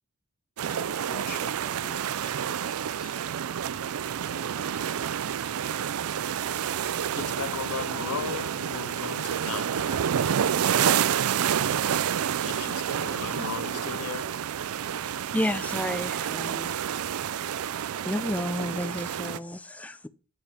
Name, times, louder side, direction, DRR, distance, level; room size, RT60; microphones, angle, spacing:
voice 1, 0.6-3.2 4.0-5.0, left 1 dB, 35° left, 1.9 m, -47 dB
sound 1, 0.6-19.4, right 9 dB, 75° right, 0.4 m, -29 dB
voice 2, 7.2-10.2 12.4-14.5 14.7-14.9, left 7 dB, 80° left, 0.5 m, -37 dB
voice 3, 15.3-16.7 18.0-20.1, left 1 dB, 5° left, 0.4 m, -31 dB
8.8 x 5.5 x 4.4 m
head